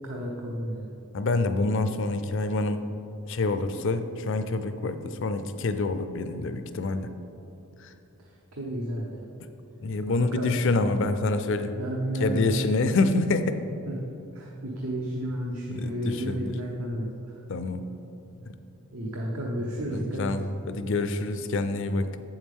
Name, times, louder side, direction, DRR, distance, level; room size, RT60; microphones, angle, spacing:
voice 1, 0.0-0.9 8.6-9.2 10.1-10.5 11.7-12.9 13.9-14.0 14.3-17.1 18.4-18.5 18.9-20.3, right 1 dB, 75° right, -2 dB, 0.8 m, -32 dB
voice 2, 1.1-2.8 3.3-7.1 9.8-11.7 12.2-13.6 15.8-16.0 16.3-16.5 17.5-17.9 19.9-22.2, left 3 dB, 55° left, 10 dB, 0.4 m, -27 dB
8.2 x 7.2 x 3.6 m, 2.8 s
head